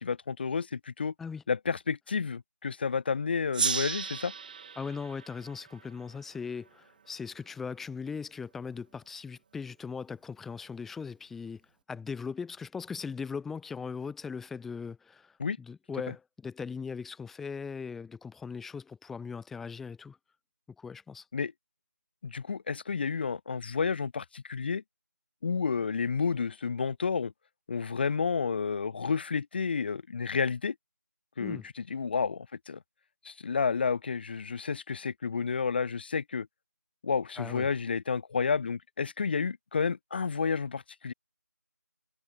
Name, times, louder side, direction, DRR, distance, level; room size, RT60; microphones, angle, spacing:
voice 1, 0.0-1.1 1.5-4.3 15.4-15.6 16.1-16.2 21.3-21.5 22.2-24.8 25.4-27.3 27.7-30.7 31.4-32.8 33.2-36.5 37.0-41.1, left 5 dB, 35° left, 1.4 m, -31 dB
Gong, 3.5-6.7, right 6 dB, 30° right, 1.4 m, -35 dB
voice 2, 4.8-11.6 11.9-20.2 20.8-21.2 31.4-31.6 37.4-37.7, left 5 dB, 5° left, 1.0 m, -39 dB
figure-of-eight pair, 165°, 9 cm